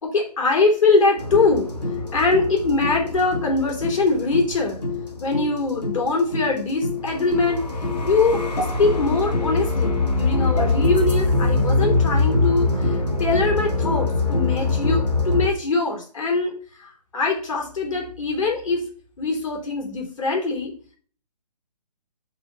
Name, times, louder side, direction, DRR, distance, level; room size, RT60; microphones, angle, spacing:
voice 1, 0.0-1.7 2.1-4.8 5.2-7.6 8.0-18.8 19.2-20.7, left 3 dB, 50° left, 0 dB, 3.4 m, -22 dB
sound 1, 1.2-15.5, left 3 dB, 75° left, 2.3 m, -23 dB
7.1 x 4.1 x 5.5 m, 0.43 s
hypercardioid pair, 150°, 21 cm